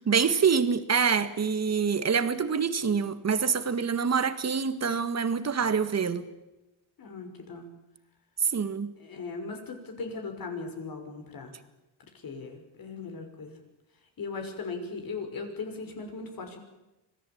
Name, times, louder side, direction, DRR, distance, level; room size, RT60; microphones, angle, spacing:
voice 1, 0.1-6.3 8.4-8.9, right 6 dB, 35° right, 11 dB, 1.9 m, -26 dB
voice 2, 7.0-7.7 9.0-11.5 12.2-13.6 14.2-16.6, left 4 dB, 50° left, 5 dB, 6.0 m, -38 dB
25.5 x 18.0 x 8.8 m, 0.99 s
cardioid pair, 110°, 44 cm